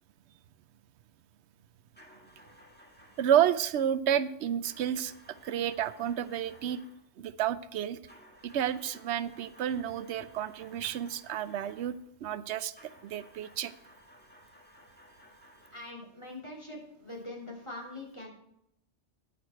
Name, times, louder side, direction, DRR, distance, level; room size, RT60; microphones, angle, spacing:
sound 1, 1.9-3.5 4.6-7.1 8.1-12.0 12.7-16.0, left 1 dB, 10° left, 1.6 m, -57 dB
voice 1, 3.2-5.1 5.4-6.8 7.2-8.0 8.4-11.9 12.2-12.7 13.0-13.7, right 10 dB, 90° right, 15 dB, 0.9 m, -30 dB
voice 2, 15.7-18.3, left 2 dB, 25° left, -2 dB, 3.0 m, -43 dB
10.0 x 9.4 x 4.4 m, 0.74 s
omnidirectional pair, 1.1 m